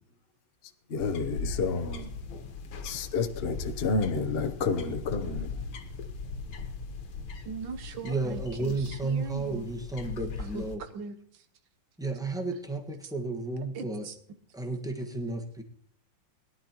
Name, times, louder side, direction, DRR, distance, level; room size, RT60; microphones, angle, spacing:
voice 1, 0.9-2.1 2.8-5.6, left 4 dB, 55° left, 0.6 m, -30 dB
sound 1, 1.0-10.8, left 4 dB, 70° left, 2.0 m, -39 dB
voice 2, 7.4-9.7 10.5-11.1 13.7-14.1, right 5 dB, 70° right, 1.6 m, -40 dB
voice 3, 8.0-10.8 12.0-14.1 14.5-15.6, right 3 dB, ahead, 1.1 m, -32 dB
21.5 x 11.0 x 3.0 m
omnidirectional pair, 2.3 m